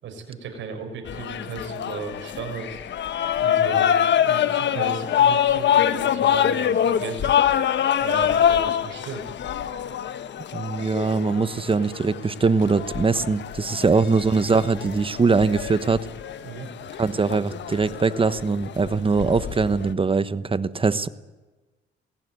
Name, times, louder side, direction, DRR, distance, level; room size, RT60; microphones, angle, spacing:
voice 1, 0.0-2.8 3.4-7.4 8.0-9.2 13.9-14.0 16.4-16.7, right 5 dB, 70° right, 5 dB, 6.7 m, -35 dB
sound 1, 1.1-19.9, left 9 dB, 65° left, 1.4 m, -25 dB
voice 2, 10.5-16.1 17.0-21.1, right 4 dB, 25° right, 14 dB, 1.1 m, -22 dB
20.5 x 18.5 x 9.6 m, 1.2 s
cardioid pair, 90°, 20 cm